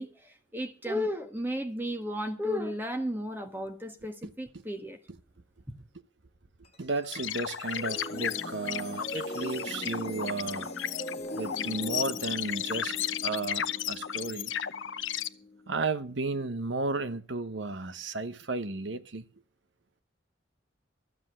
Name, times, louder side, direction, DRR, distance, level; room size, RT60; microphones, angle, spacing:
voice 1, 0.0-5.0 5.7-5.8, equal, 10° right, 1.5 m, -34 dB
sound 1, 6.6-15.9, left 1 dB, 35° left, 1.7 m, -41 dB
voice 2, 6.8-10.7 11.3-12.9 13.2-14.5 15.7-19.3, right 3 dB, 75° right, 1.0 m, -33 dB
sound 2, 7.1-15.3, left 9 dB, 85° left, 0.8 m, -34 dB
14.0 x 7.8 x 7.6 m
head